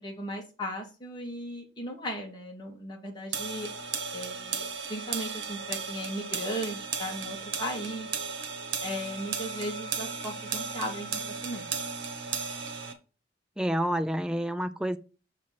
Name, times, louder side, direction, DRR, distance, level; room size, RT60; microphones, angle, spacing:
voice 1, 0.0-3.7 4.1-8.1 8.8-11.7, equal, 25° left, 2.4 m, -37 dB
sound 1, 3.3-12.9, right 5 dB, 85° right, 1.3 m, -35 dB
voice 2, 13.6-15.0, equal, 5° right, 0.5 m, -28 dB
6.5 x 4.3 x 6.3 m
head